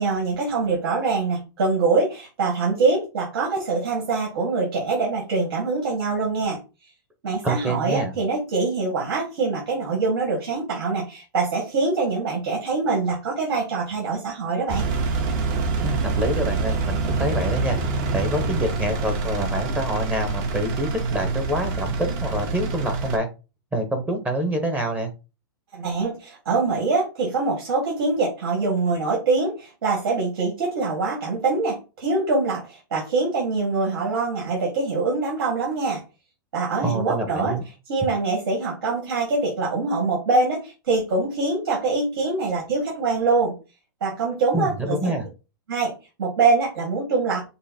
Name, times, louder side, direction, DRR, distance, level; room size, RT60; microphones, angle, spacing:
voice 1, 0.0-6.6 7.2-14.9 25.7-36.0 36.5-37.6 37.9-43.6 44.0-45.1 45.7-45.9 46.2-47.4, right 3 dB, 75° right, -2 dB, 1.9 m, -24 dB
voice 2, 7.4-8.1 15.8-17.8 18.1-23.3 23.7-25.1 36.8-37.6 44.5-45.3, right 1 dB, 10° right, 4 dB, 0.9 m, -26 dB
Engine, 14.7-23.2, right 3 dB, 45° right, 1.0 m, -26 dB
5.5 x 2.0 x 4.2 m, 0.30 s
hypercardioid pair, 140°, 12 cm